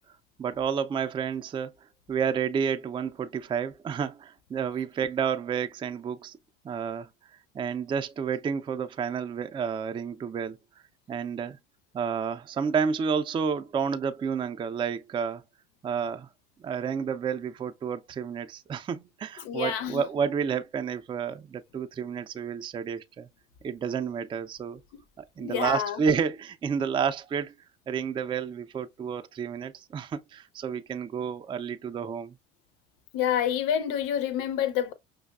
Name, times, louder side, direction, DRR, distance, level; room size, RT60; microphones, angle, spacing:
voice 1, 0.4-1.7 2.1-6.4 6.6-7.1 7.5-10.6 11.1-11.6 11.9-15.4 15.8-16.3 16.6-23.3 23.6-24.8 25.2-27.5 27.9-32.3, right 7 dB, 15° right, 0.3 m, -30 dB
voice 2, 19.4-20.0 24.9-25.0 25.4-26.0 33.1-34.9, left 9 dB, 70° left, 0.6 m, -28 dB
5.6 x 2.0 x 2.3 m
hypercardioid pair, 85°, 29 cm